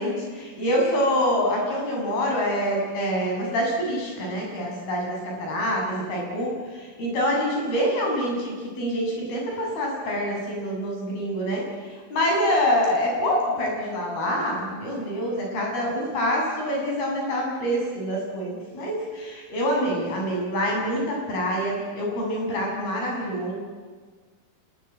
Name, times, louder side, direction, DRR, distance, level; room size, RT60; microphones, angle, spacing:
voice 1, 0.0-11.7 12.1-23.6, equal, 50° left, -1 dB, 8.9 m, -26 dB
26.5 x 22.0 x 9.4 m, 1.5 s
omnidirectional pair, 5.6 m